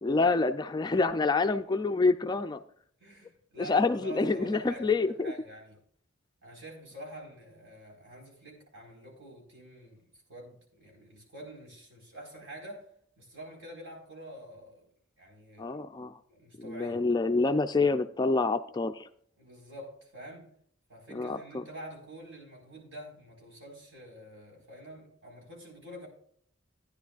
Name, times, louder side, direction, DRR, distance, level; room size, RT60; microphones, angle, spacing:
voice 1, 0.0-2.6 3.7-5.3 15.6-16.1 16.6-19.1 21.1-21.6, left 3 dB, 20° left, 0.3 m, -27 dB
voice 2, 3.0-5.8 6.4-14.8 15.2-15.8 16.3-17.0 19.4-20.5 20.9-26.1, equal, 65° right, 4.7 m, -47 dB
15.5 x 9.9 x 2.4 m
head